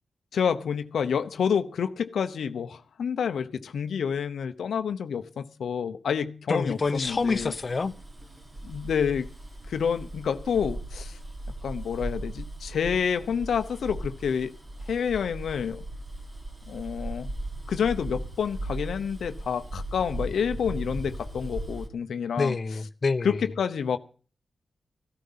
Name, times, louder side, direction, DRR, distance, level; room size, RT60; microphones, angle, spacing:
voice 1, 0.3-7.5 8.6-9.3 9.7-11.2 11.6-14.5 14.9-15.8 16.7-17.3 17.7-22.6 23.2-24.0, left 7 dB, 90° left, 0.8 m, -28 dB
voice 2, 6.5-7.9 22.4-23.4, left 4 dB, 45° left, 0.9 m, -27 dB
Bus, 6.7-21.9, right 1 dB, 40° right, 3.2 m, -38 dB
14.5 x 13.0 x 5.7 m
cardioid pair, 75°, 0 cm